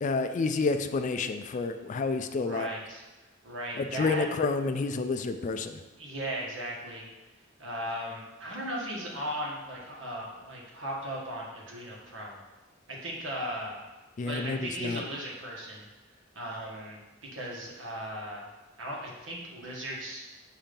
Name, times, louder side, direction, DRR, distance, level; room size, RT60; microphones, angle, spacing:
voice 1, 0.0-2.7 3.8-5.8 14.2-15.0, left 4 dB, 40° left, 8 dB, 0.3 m, -29 dB
voice 2, 2.3-3.0 3.4-4.3 6.0-7.1 7.6-12.4 12.9-13.8 14.2-15.8 16.3-17.0 17.3-18.5 18.8-20.2, equal, 75° right, -3 dB, 1.4 m, -37 dB
7.2 x 2.8 x 5.1 m, 1.1 s
head